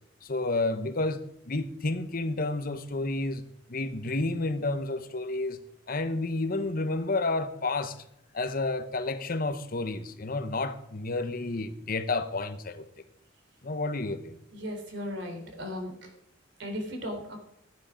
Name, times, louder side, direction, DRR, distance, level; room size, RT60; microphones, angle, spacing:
voice 1, 0.2-3.4 3.7-5.6 5.9-8.0 8.3-12.9 13.6-14.4, left 2 dB, 50° left, 0.9 m, -30 dB
voice 2, 14.5-16.1 16.6-17.4, equal, 65° right, 3.7 m, -36 dB
14.5 x 10.0 x 5.0 m
head